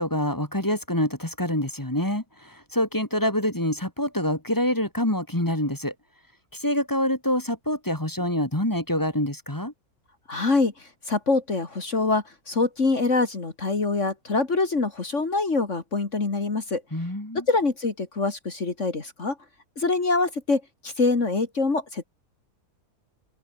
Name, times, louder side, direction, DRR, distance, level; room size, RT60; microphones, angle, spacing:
voice 1, 0.0-5.9 6.5-9.7 16.9-17.4, left 1 dB, 10° left, 2.6 m, -26 dB
voice 2, 10.3-16.8 17.5-19.4 19.8-22.0, left 3 dB, 50° left, 2.8 m, -25 dB
omnidirectional pair, 1.7 m